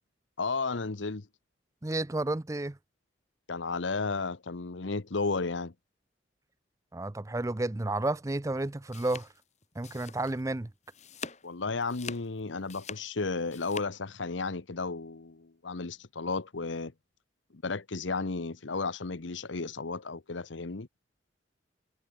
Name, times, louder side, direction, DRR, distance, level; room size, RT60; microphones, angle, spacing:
voice 1, 0.4-1.3 3.5-5.7 11.4-16.9 17.5-20.9, left 4 dB, 80° left, 1.0 m, -33 dB
voice 2, 1.8-2.8 6.9-9.3 9.8-10.7, right 2 dB, 15° right, 0.5 m, -31 dB
sound 1, 8.6-10.5 10.8-11.5 11.8-13.9, left 5 dB, 35° left, 4.0 m, -44 dB
head